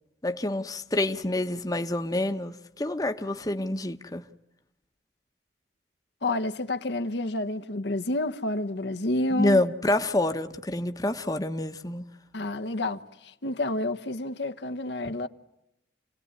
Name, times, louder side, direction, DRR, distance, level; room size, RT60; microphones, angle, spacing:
voice 1, 0.2-4.2 9.3-12.1, left 1 dB, 20° left, 1.0 m, -27 dB
voice 2, 6.2-9.6 12.3-15.3, left 2 dB, 75° left, 1.1 m, -29 dB
29.0 x 18.0 x 9.7 m
head